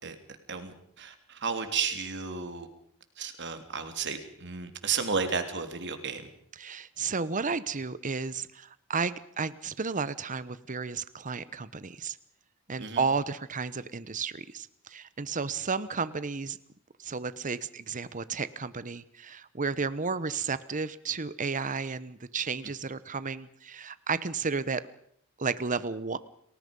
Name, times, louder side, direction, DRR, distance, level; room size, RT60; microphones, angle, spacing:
voice 1, 0.5-2.7 3.2-6.3 12.8-13.0, right 5 dB, 55° right, 7 dB, 3.4 m, -33 dB
voice 2, 6.6-12.2 12.7-16.6 17.0-24.8 25.4-26.2, right 4 dB, 35° right, 15 dB, 1.0 m, -32 dB
30.0 x 20.5 x 5.4 m, 0.66 s
head